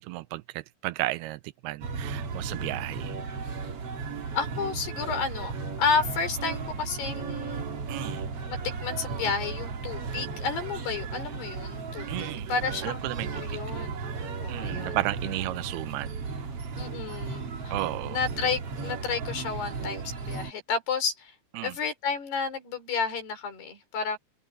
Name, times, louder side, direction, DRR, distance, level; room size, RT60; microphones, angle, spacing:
voice 1, 0.0-3.2 7.9-8.2 12.1-12.5 12.8-13.6 14.5-16.2 17.7-18.2 21.5-21.7, right 18 dB, 80° right, 2.5 m, -33 dB
sound 1, 1.8-20.5, right 4 dB, 45° right, 2.5 m, -35 dB
voice 2, 4.3-5.5 5.8-7.7 8.5-13.0 13.3-14.0 14.4-15.0 16.8-17.7 18.0-21.3 21.6-24.2, left 5 dB, 80° left, 7.0 m, -31 dB
open air
omnidirectional pair, 4.6 m